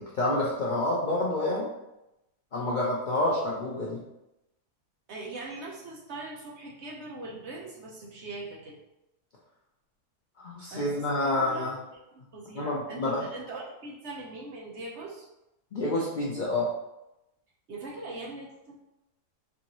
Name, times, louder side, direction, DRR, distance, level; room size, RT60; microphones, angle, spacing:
voice 1, 0.0-1.7 2.5-4.0 10.4-11.7 12.6-13.2 15.7-16.7, left 1 dB, 90° left, -4 dB, 0.4 m, -28 dB
voice 2, 5.1-8.8 10.7-12.0 12.3-15.3 17.7-18.7, right 2 dB, 55° right, -4 dB, 1.0 m, -41 dB
4.7 x 2.6 x 3.0 m, 0.92 s
omnidirectional pair, 1.6 m